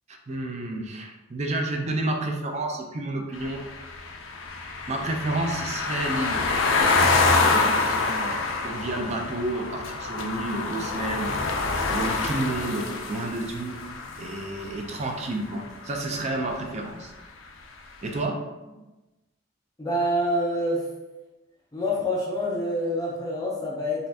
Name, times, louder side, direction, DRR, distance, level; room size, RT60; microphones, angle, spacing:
voice 1, 0.1-3.6 4.9-6.5 7.9-8.4 8.6-11.4 11.9-13.8 14.2-17.1 18.0-18.4, right 2 dB, 35° right, 1 dB, 0.5 m, -30 dB
sound 1, 3.4-15.4, left 3 dB, 75° left, 0.4 m, -26 dB
voice 2, 7.2-7.7 19.8-20.9 21.7-24.1, equal, 20° left, -4 dB, 0.5 m, -27 dB
4.1 x 2.5 x 2.7 m, 1.1 s
head